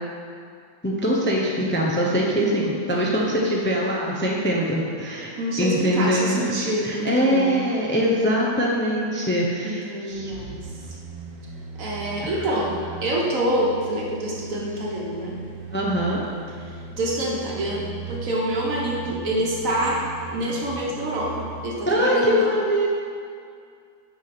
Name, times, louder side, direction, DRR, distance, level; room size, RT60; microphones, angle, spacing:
voice 1, 0.8-5.3 5.6-6.4 6.8-10.3 12.2-12.5 15.7-16.3 21.9-22.9, equal, 10° left, -3 dB, 0.6 m, -23 dB
voice 2, 5.4-7.6 9.6-10.6 11.8-12.7 13.0-15.3 17.0-20.0 20.3-22.5, right 1 dB, 65° right, -3 dB, 1.6 m, -26 dB
sound 1, 10.1-21.7 22.1-22.2, right 4 dB, 85° right, 1.5 m, -38 dB
6.0 x 5.5 x 6.0 m, 2.2 s
omnidirectional pair, 1.6 m